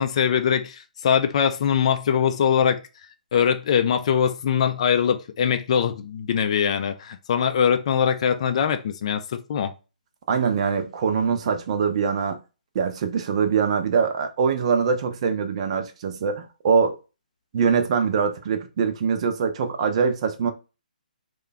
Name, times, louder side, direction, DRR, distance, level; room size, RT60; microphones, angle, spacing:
voice 1, 0.0-2.8 3.3-9.7, left 8 dB, 45° left, 0.4 m, -22 dB
voice 2, 10.3-12.4 12.7-17.0 17.5-20.5, right 6 dB, 40° right, 0.6 m, -23 dB
3.2 x 2.3 x 3.8 m
figure-of-eight pair, 140°, 5 cm